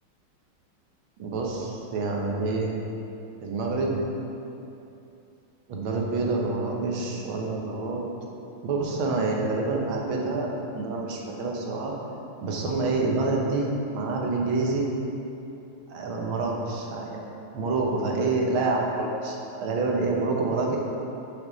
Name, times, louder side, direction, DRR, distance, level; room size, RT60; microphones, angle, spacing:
voice 1, 1.2-2.7 3.4-4.0 5.7-8.0 8.6-11.9 12.4-14.9 15.9-17.2 17.5-20.8, right 3 dB, 75° right, -1 dB, 1.8 m, -27 dB
9.3 x 5.6 x 4.0 m, 2.8 s
omnidirectional pair, 2.3 m